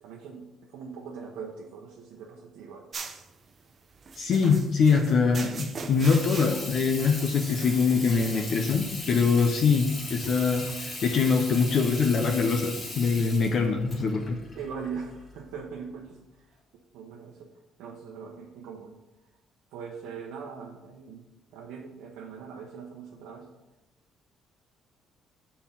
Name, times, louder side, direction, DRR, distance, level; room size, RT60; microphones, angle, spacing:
voice 1, 0.0-2.9 14.5-16.2 16.9-17.5 17.8-19.0 19.7-21.2 21.5-23.5, right 6 dB, 85° right, -1 dB, 0.8 m, -41 dB
sound 1, 2.9-11.4, right 4 dB, 35° right, 0.6 m, -42 dB
voice 2, 4.2-14.4, left 5 dB, 50° left, 3 dB, 0.6 m, -24 dB
Water tap faucet / Sink (filling or washing), 5.8-15.4, left 2 dB, 30° left, 1.9 m, -39 dB
5.6 x 4.3 x 5.7 m, 1.0 s
cardioid pair, 115°, 0 cm